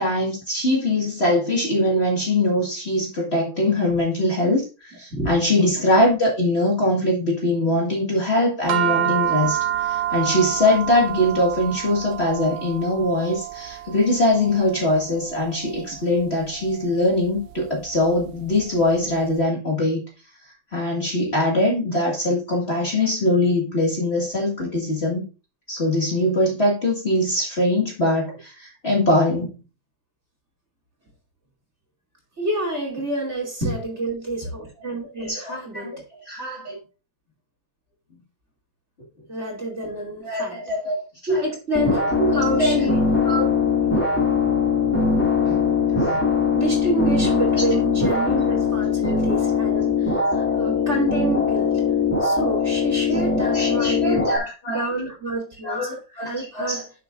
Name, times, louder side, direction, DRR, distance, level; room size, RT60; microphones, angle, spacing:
voice 1, 0.0-20.0 20.7-25.2 25.7-29.5 35.3-36.0 36.3-36.8 40.2-41.1 42.2-42.8 43.3-43.5 45.4-46.2 47.5-47.6 49.7-49.8 53.3-54.8 55.6-56.8, left 1 dB, 30° left, 2.0 m, -22 dB
voice 2, 5.6-5.9 32.4-35.9 39.3-40.6 41.3-43.0 45.5-45.6 46.5-51.8 52.2-54.3 54.7-56.8, right 2 dB, 30° right, 3.0 m, -28 dB
sound 1, 8.7-19.2, right 12 dB, 65° right, 1.4 m, -29 dB
sound 2, 41.7-54.4, left 5 dB, 5° left, 2.0 m, -21 dB
11.5 x 6.8 x 2.5 m
omnidirectional pair, 2.3 m